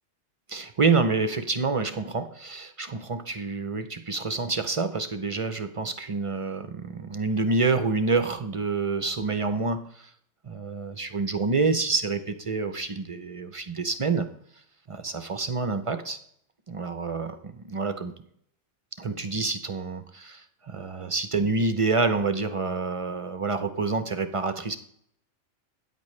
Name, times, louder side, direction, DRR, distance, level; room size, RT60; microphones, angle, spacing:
voice 1, 0.5-10.1 10.4-14.3 14.9-16.2 16.7-18.1 19.0-24.8, right 4 dB, 50° right, 10 dB, 0.4 m, -27 dB
13.5 x 9.7 x 3.2 m, 0.69 s
omnidirectional pair, 1.4 m